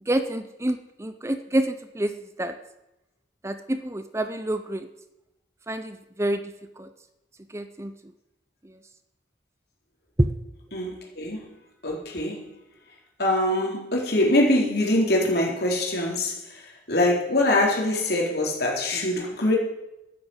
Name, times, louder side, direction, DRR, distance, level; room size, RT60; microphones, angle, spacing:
voice 1, 0.0-2.1 2.4-2.6 3.4-4.9 5.7-6.9 7.5-7.9 8.6-8.8 10.2-10.3, right 1 dB, 15° right, 10 dB, 0.7 m, -27 dB
voice 2, 10.7-11.4 11.8-12.4 13.2-19.6, left 1 dB, 60° left, -1 dB, 4.1 m, -23 dB
12.0 x 10.5 x 8.1 m, 0.93 s
head